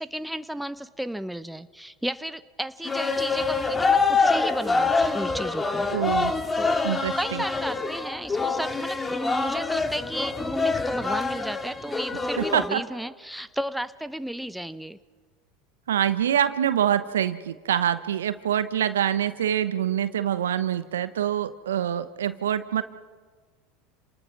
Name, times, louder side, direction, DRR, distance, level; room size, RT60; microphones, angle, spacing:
voice 1, 0.0-5.9 6.6-6.8 7.2-15.0, equal, ahead, 12 dB, 0.9 m, -33 dB
sound 1, 2.8-12.7, left 4 dB, 20° left, 2.1 m, -25 dB
voice 2, 5.9-6.3 6.8-7.4 12.4-12.8 15.9-22.8, right 10 dB, 80° right, 13 dB, 1.0 m, -25 dB
29.5 x 19.5 x 5.9 m, 1.5 s
hypercardioid pair, 80°, 0 cm